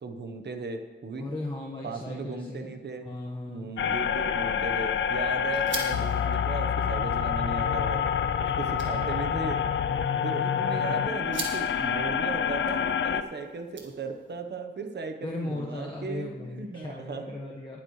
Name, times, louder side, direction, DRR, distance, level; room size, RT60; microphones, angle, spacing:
voice 1, 0.0-1.3 1.8-3.1 3.5-8.0 8.4-9.6 9.9-17.2, right 4 dB, 65° right, 6 dB, 1.1 m, -36 dB
voice 2, 1.2-3.8 9.0-9.4 15.2-17.8, left 2 dB, 25° left, -4 dB, 1.3 m, -37 dB
sound 1, 3.8-13.2, left 8 dB, 85° left, 0.5 m, -27 dB
sound 2, 4.1-14.4, right 4 dB, 85° right, 1.7 m, -44 dB
20.0 x 7.6 x 3.3 m, 1.3 s
cardioid pair, 70°, 19 cm